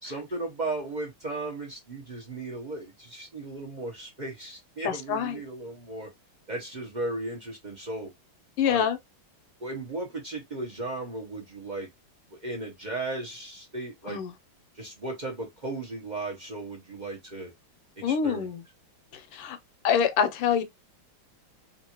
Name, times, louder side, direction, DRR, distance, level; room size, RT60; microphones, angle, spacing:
voice 1, 0.0-6.1 6.5-8.1 8.6-8.9 9.6-11.9 12.3-14.2 14.7-17.5 18.0-18.5, right 2 dB, 70° right, 0.4 m, -36 dB
voice 2, 4.8-5.4 8.6-9.0 14.1-14.3 18.0-18.6 19.1-19.6 19.8-20.6, left 8 dB, 85° left, 1.7 m, -26 dB
3.6 x 2.6 x 2.9 m
omnidirectional pair, 2.4 m